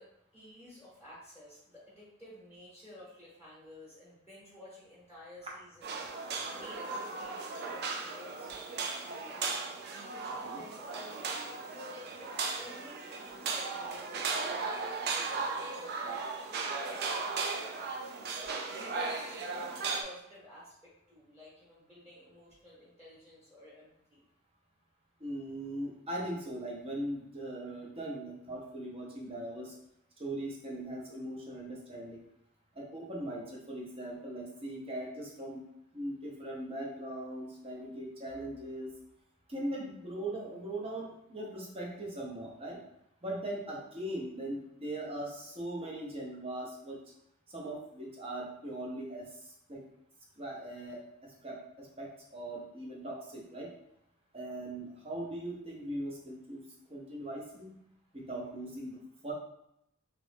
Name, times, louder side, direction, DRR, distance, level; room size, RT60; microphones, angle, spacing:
voice 1, 0.0-9.6 10.1-18.1 18.7-24.2, left 1 dB, 5° right, -8 dB, 1.1 m, -53 dB
sound 1, 5.8-20.0, right 4 dB, 55° right, 0.4 m, -36 dB
voice 2, 25.2-29.7 30.2-32.2 32.8-35.6 35.9-38.9 39.5-42.8 43.2-47.0 47.5-49.3 49.7-49.8 50.4-51.0 51.4-53.7 54.3-56.6 56.9-57.8 58.1-59.0 59.2-59.3, right 1 dB, 30° right, -3 dB, 0.8 m, -40 dB
3.0 x 2.5 x 3.3 m, 0.77 s
head